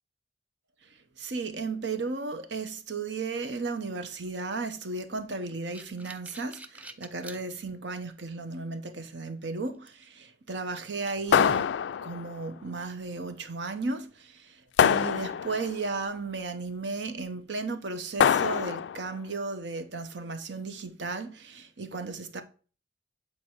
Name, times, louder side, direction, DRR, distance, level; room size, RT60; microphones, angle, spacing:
voice 1, 1.2-11.7 12.0-22.4, right 3 dB, 85° right, 1.0 m, -35 dB
sound 1, 5.3-7.4 8.0-8.1 9.9-10.1 10.6-10.7 11.1-11.7, right 1 dB, 10° right, 0.5 m, -42 dB
sound 2, 11.3-12.4 14.8-15.8 18.2-19.1, left 8 dB, 80° left, 0.3 m, -24 dB
8.1 x 4.5 x 4.4 m
head